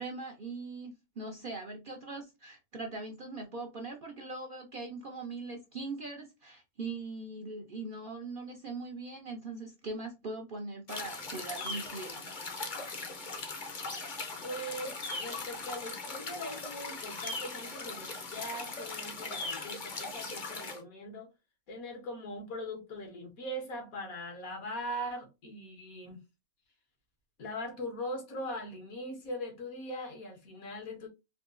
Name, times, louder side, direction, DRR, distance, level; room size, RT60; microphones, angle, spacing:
voice 1, 0.0-12.2, right 3 dB, 50° right, 0.6 m, -41 dB
sound 1, 10.9-20.8, left 3 dB, 40° left, 0.8 m, -39 dB
voice 2, 14.4-21.3 21.7-26.2 27.4-31.1, equal, 75° left, 1.7 m, -41 dB
3.7 x 2.8 x 2.5 m
omnidirectional pair, 1.5 m